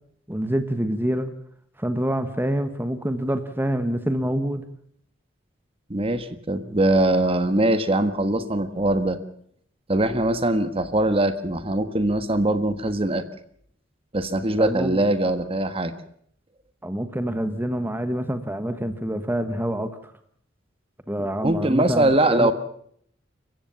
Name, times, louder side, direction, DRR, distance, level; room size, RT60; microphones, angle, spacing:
voice 1, 0.3-1.3 1.8-4.6 14.6-15.0 16.8-20.0 21.1-22.5, right 1 dB, 10° right, 9 dB, 1.3 m, -26 dB
voice 2, 5.9-9.2 9.9-13.2 14.1-15.9 21.2-22.5, right 1 dB, 30° right, 11 dB, 1.3 m, -22 dB
28.0 x 15.5 x 7.0 m, 0.65 s
head